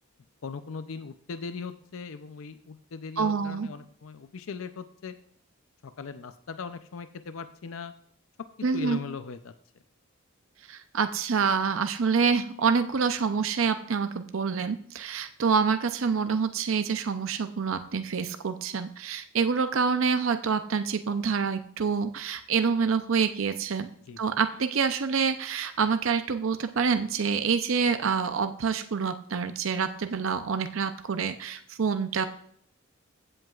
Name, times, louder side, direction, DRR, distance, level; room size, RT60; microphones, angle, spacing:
voice 1, 0.4-5.1 5.8-7.9 8.7-9.5 24.1-24.2, left 5 dB, 80° left, 10 dB, 0.5 m, -39 dB
voice 2, 3.2-3.7 8.6-9.0 10.7-23.9 24.2-32.3, right 5 dB, 75° right, 8 dB, 0.5 m, -27 dB
15.5 x 7.8 x 2.4 m, 0.65 s
head